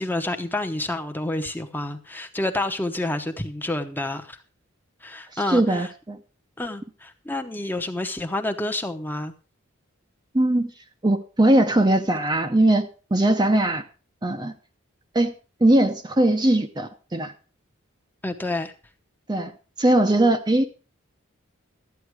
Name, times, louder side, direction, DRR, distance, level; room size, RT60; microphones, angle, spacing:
voice 1, 0.0-4.4 5.0-5.9 6.6-9.3 18.2-18.7, left 2 dB, 10° left, 5 dB, 0.9 m, -29 dB
voice 2, 5.5-6.2 10.3-10.7 11.0-13.8 14.2-14.5 15.1-15.3 15.6-17.3 19.3-19.5 19.8-20.7, right 1 dB, 20° right, 5 dB, 0.6 m, -20 dB
13.0 x 9.2 x 4.7 m, 0.35 s
head